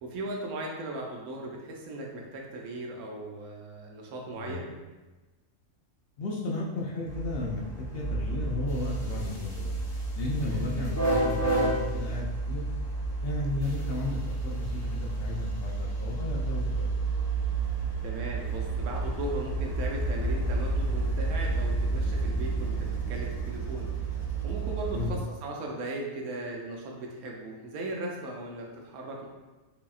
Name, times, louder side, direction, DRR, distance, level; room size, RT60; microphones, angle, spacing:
voice 1, 0.0-4.7 10.4-10.7 18.0-29.3, right 2 dB, 85° right, -1 dB, 1.1 m, -38 dB
voice 2, 4.3-4.8 6.2-9.7 10.1-12.6 13.2-16.9 24.9-25.2, left 2 dB, 60° left, -3 dB, 0.6 m, -34 dB
sound 1, 7.1-25.1, right 2 dB, 15° left, 0.7 m, -30 dB
4.9 x 2.8 x 2.4 m, 1.2 s
omnidirectional pair, 1.5 m